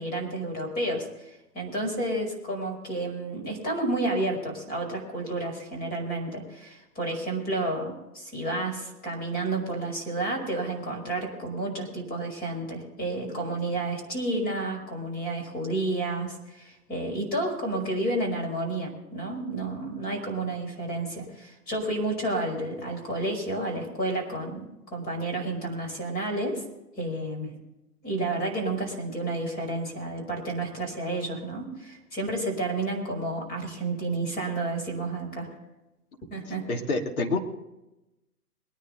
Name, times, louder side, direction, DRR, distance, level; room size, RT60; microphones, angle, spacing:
voice 1, 0.0-24.7 24.9-26.6 27.0-27.5 28.0-35.5 36.3-36.6, right 2 dB, 20° left, 1 dB, 5.3 m, -31 dB
voice 2, 36.7-37.4, left 3 dB, 60° left, 3 dB, 2.8 m, -27 dB
23.0 x 10.5 x 4.0 m, 0.94 s
figure-of-eight pair, 130°, 48 cm